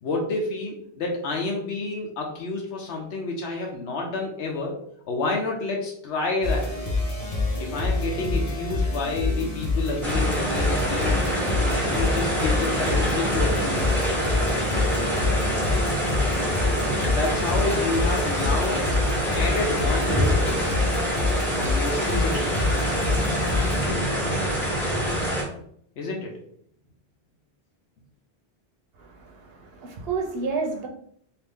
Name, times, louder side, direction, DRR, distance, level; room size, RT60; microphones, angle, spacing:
voice 1, 0.0-4.8 5.1-6.7 7.6-13.9 17.0-18.9 19.4-20.8 21.5-22.4 26.0-26.3, left 3 dB, 80° left, 0 dB, 0.9 m, -29 dB
sound 1, 6.4-23.9, left 2 dB, 40° left, 0.7 m, -27 dB
sound 2, 10.0-25.4, equal, ahead, 1.0 m, -26 dB
voice 2, 29.0-30.9, right 4 dB, 70° right, 3 dB, 0.8 m, -30 dB
2.8 x 2.5 x 3.5 m, 0.66 s
omnidirectional pair, 1.1 m